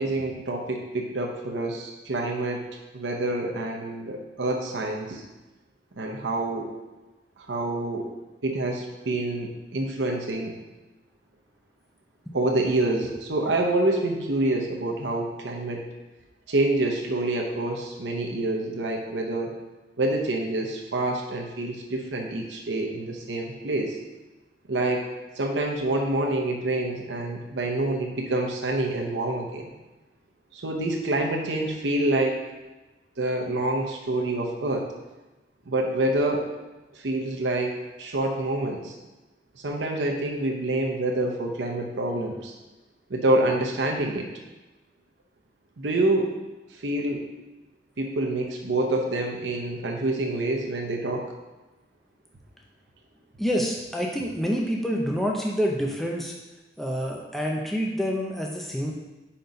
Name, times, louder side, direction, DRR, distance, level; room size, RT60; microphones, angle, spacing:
voice 1, 0.0-2.6 2.9-5.2 6.0-6.7 7.4-8.0 8.4-10.5 12.3-15.8 16.5-19.5 20.0-24.0 24.7-25.0 25.4-29.7 30.5-32.4 33.2-34.9 35.7-36.5 36.9-38.9 39.6-42.5 43.1-44.3 45.8-46.3 46.7-47.2 48.0-51.3, right 2 dB, 90° right, 0 dB, 0.7 m, -27 dB
voice 2, 53.4-56.3 56.8-58.9, equal, ahead, -1 dB, 0.5 m, -27 dB
5.1 x 4.4 x 5.2 m, 1.1 s
head